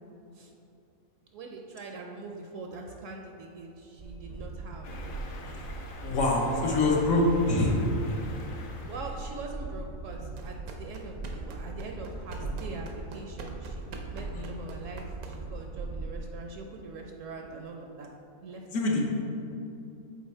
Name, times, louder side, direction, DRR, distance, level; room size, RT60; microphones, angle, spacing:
voice 1, 1.3-4.9 6.4-7.4 8.9-18.1 18.4-18.7, right 3 dB, 70° right, 2 dB, 0.9 m, -43 dB
Train, 4.0-16.2, right 2 dB, 55° right, 0.5 m, -40 dB
sound 1, 4.8-9.4, left 2 dB, 55° left, 0.6 m, -46 dB
voice 2, 6.0-7.8 14.3-14.4 18.7-19.0, left 2 dB, 70° left, -1 dB, 1.3 m, -24 dB
sound 2, 10.3-15.7, right 3 dB, 85° right, 1.2 m, -45 dB
7.2 x 4.1 x 4.3 m, 2.8 s
omnidirectional pair, 1.5 m